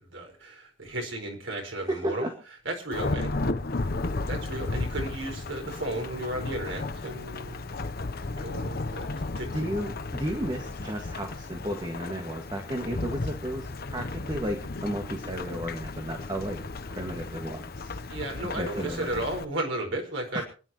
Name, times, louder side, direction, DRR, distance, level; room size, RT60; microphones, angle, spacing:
voice 1, 0.0-2.3 2.6-3.3 4.2-7.6 8.3-9.5 18.1-20.4, right 1 dB, 75° right, 2 dB, 5.1 m, -34 dB
voice 2, 1.9-2.3 9.5-16.6 16.9-18.0 18.6-19.1 20.3-20.4, right 1 dB, 25° right, 3 dB, 1.9 m, -33 dB
Thunderstorm / Rain, 2.9-19.4, left 2 dB, 50° left, 0.9 m, -34 dB
27.0 x 10.5 x 3.1 m, 0.36 s
head